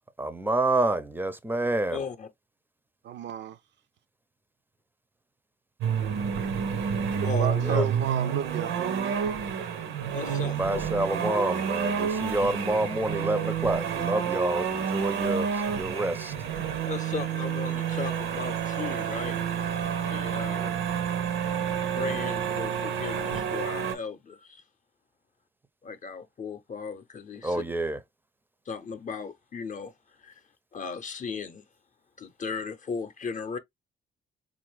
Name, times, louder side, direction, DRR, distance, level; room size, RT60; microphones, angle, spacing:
voice 1, 0.2-2.0 7.6-7.9 10.4-16.3 27.4-28.0, right 2 dB, 10° right, 0.5 m, -28 dB
voice 2, 1.9-2.3 7.2-7.9 10.1-10.8 16.9-19.4 20.1-20.9 21.9-24.6 25.8-27.6 28.7-29.9 30.2-30.3 30.7-31.6 32.2-33.6, left 5 dB, 40° left, 0.6 m, -36 dB
voice 3, 3.0-3.6 6.4-6.5 7.2-9.2, right 10 dB, 65° right, 0.4 m, -33 dB
sound 1, 5.8-24.0, right 7 dB, 85° right, 0.8 m, -29 dB
3.8 x 2.5 x 3.1 m
cardioid pair, 90°, 20 cm